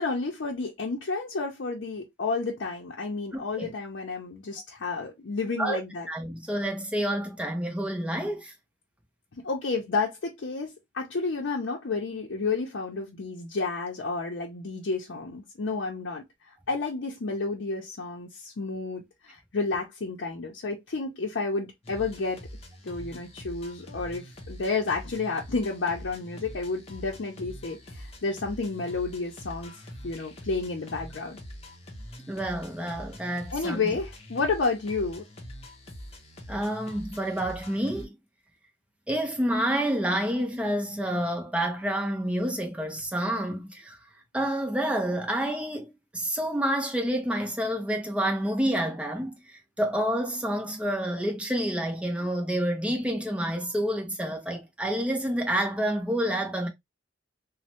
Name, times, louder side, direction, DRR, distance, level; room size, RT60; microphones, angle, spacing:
voice 1, 0.0-6.1 9.3-22.4 22.8-29.7 30.0-31.4 33.5-35.3, left 3 dB, 75° left, 0.6 m, -31 dB
voice 2, 3.3-3.7 5.6-8.5 32.3-34.0 36.5-38.2 39.1-44.0 44.3-56.7, right 1 dB, 5° right, 0.6 m, -29 dB
sound 1, 21.8-38.1, equal, 35° left, 0.8 m, -44 dB
3.1 x 2.1 x 2.8 m
head